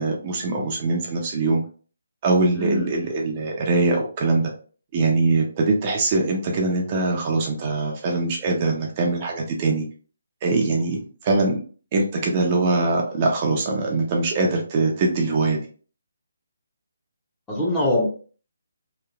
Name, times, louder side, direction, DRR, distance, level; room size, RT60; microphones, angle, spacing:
voice 1, 0.0-1.6 2.2-4.5 4.9-9.8 10.4-11.6 11.9-15.6, right 3 dB, 30° right, 0 dB, 0.5 m, -22 dB
voice 2, 2.6-2.9 17.5-18.1, left 1 dB, 10° left, -5 dB, 0.7 m, -22 dB
2.9 x 2.3 x 2.3 m, 0.39 s
hypercardioid pair, 160°, 0 cm